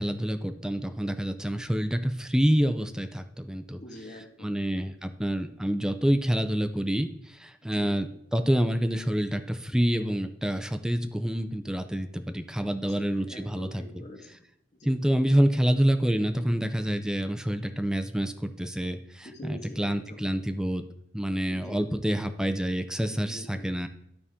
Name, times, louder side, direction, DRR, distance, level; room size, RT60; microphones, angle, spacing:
voice 1, 0.0-3.8 4.4-14.0 14.8-20.8 21.1-23.9, equal, 5° right, 8 dB, 0.5 m, -27 dB
voice 2, 3.8-4.5 7.6-7.9 12.7-14.4 14.8-14.9 19.2-20.2 21.5-21.8 23.1-23.7, left 1 dB, 40° left, 1 dB, 1.5 m, -45 dB
12.5 x 4.2 x 3.6 m, 0.77 s
head